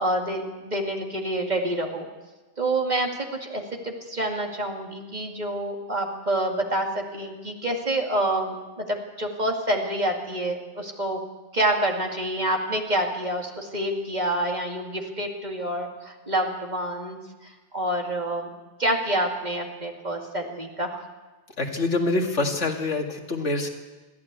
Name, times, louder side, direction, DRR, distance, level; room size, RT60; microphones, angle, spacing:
voice 1, 0.0-2.1 2.6-3.1 3.4-11.2 11.5-17.2 17.7-18.5 18.8-21.0, right 1 dB, 40° right, 1 dB, 2.5 m, -27 dB
voice 2, 21.6-23.7, left 2 dB, 80° left, 2 dB, 2.5 m, -25 dB
22.0 x 14.5 x 8.3 m, 1.2 s
omnidirectional pair, 1.2 m